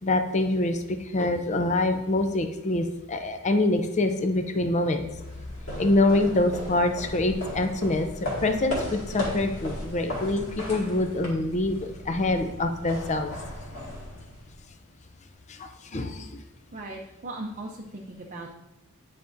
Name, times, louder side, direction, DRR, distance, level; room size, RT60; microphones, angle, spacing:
voice 1, 0.0-5.1 5.8-13.3 15.5-16.4, left 2 dB, 30° left, 7 dB, 0.5 m, -25 dB
sound 1, 5.0-14.7, left 1 dB, 65° left, 2.0 m, -36 dB
voice 2, 16.7-18.5, right 2 dB, 35° right, -1 dB, 0.6 m, -38 dB
9.1 x 5.1 x 2.6 m, 1.0 s
head